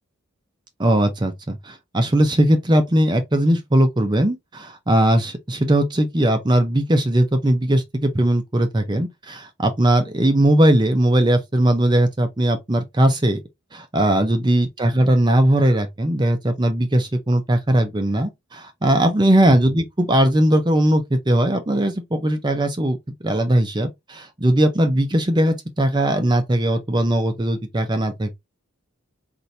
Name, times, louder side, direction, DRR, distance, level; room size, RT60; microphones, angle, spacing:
voice 1, 0.8-13.4 13.7-23.0 23.2-28.3, right 1 dB, 20° right, 0.5 m, -19 dB
4.1 x 2.6 x 3.2 m
head